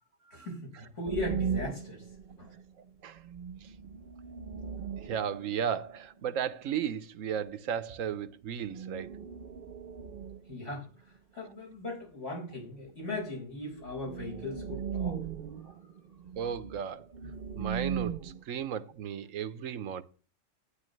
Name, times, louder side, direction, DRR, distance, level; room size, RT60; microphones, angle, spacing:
voice 1, 0.3-2.0 2.4-2.5 10.5-10.9 11.3-15.2, left 2 dB, 65° left, 5.3 m, -38 dB
sound 1, 1.1-2.6 2.9-3.0 3.2-6.3 8.6-10.7 13.2-13.3 13.7-18.4, right 7 dB, 50° right, 0.7 m, -38 dB
voice 2, 5.0-9.1 16.4-17.1 17.5-20.0, right 8 dB, 85° right, 1.2 m, -35 dB
11.5 x 9.7 x 3.2 m
omnidirectional pair, 1.3 m